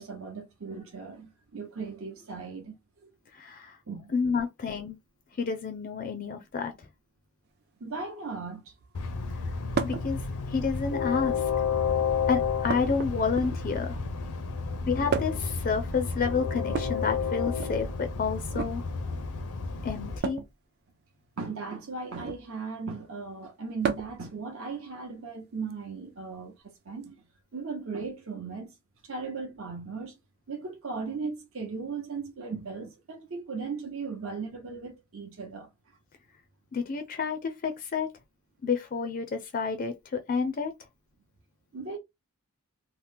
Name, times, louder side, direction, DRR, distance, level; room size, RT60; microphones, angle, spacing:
voice 1, 0.0-3.1 3.9-4.1 7.8-8.7 21.4-27.2 27.5-28.7 29.0-30.2 30.5-35.7 41.7-42.0, right 4 dB, 65° right, 0.8 m, -37 dB
voice 2, 3.3-3.8 4.1-5.0 5.4-6.7 9.8-10.2 10.5-11.4 12.3-13.9 14.9-18.8 19.8-20.4 36.7-38.1 38.6-40.7, left 5 dB, 40° left, 0.4 m, -30 dB
Train, 8.9-20.2, left 5 dB, 85° left, 0.6 m, -31 dB
sound 1, 9.7-10.1 11.1-11.6 12.7-13.8 15.1-15.5 16.6-17.7 18.4-18.7 20.2-20.5 22.1-22.5 23.8-24.2 25.7-25.8 27.0-27.1, right 5 dB, 45° right, 0.4 m, -33 dB
2.9 x 2.1 x 3.3 m
head